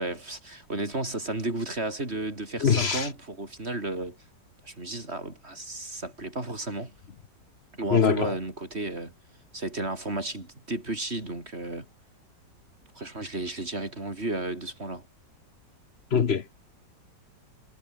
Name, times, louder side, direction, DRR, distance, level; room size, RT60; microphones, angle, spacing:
voice 1, 0.0-4.2 4.6-6.9 7.8-9.1 9.5-11.9 13.0-15.0, right 2 dB, 35° right, 5.2 m, -33 dB
voice 2, 2.6-3.0 7.9-8.3 16.1-16.4, left 6 dB, 45° left, 1.0 m, -22 dB
omnidirectional pair, 2.0 m